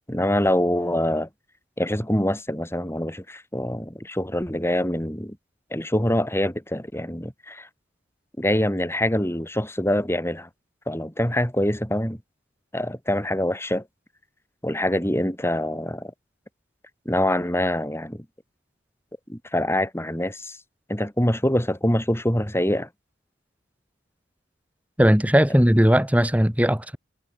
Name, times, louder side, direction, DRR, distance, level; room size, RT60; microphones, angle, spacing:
voice 1, 0.1-1.3 1.8-5.4 5.7-7.7 8.4-10.5 10.9-12.2 12.7-13.8 14.6-16.1 17.1-18.3 19.3-20.6 20.9-22.9, left 1 dB, 15° left, 7.0 m, -25 dB
voice 2, 25.0-27.0, equal, 10° right, 3.0 m, -18 dB
head